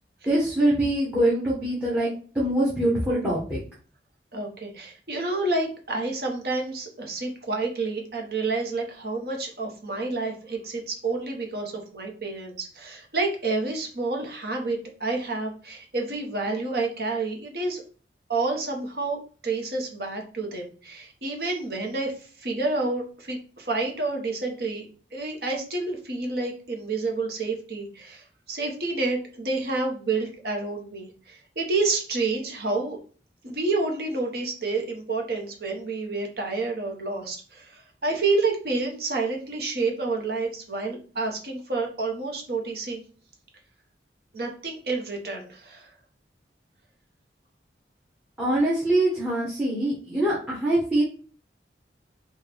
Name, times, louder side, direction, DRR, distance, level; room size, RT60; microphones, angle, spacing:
voice 1, 0.2-3.6 48.4-51.0, right 1 dB, 10° right, -6 dB, 1.0 m, -24 dB
voice 2, 4.3-17.8 18.3-22.1 22.4-24.8 25.1-33.0 33.4-43.0 44.3-45.9, right 3 dB, 55° right, 1 dB, 1.0 m, -29 dB
4.4 x 2.3 x 3.3 m, 0.40 s
head